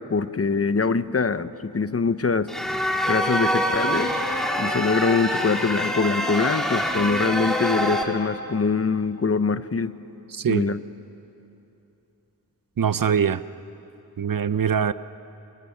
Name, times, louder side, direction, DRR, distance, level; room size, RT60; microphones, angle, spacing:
voice 1, 0.1-2.5 3.1-4.1 4.6-10.0 10.5-10.8, left 4 dB, 40° left, 13 dB, 0.8 m, -23 dB
sound 1, 2.5-8.0, equal, ahead, 2.8 m, -25 dB
voice 2, 10.3-10.7 12.8-13.4 14.2-14.9, right 7 dB, 65° right, 14 dB, 0.7 m, -22 dB
28.5 x 27.5 x 7.2 m, 2.9 s
wide cardioid pair, 85°, 37 cm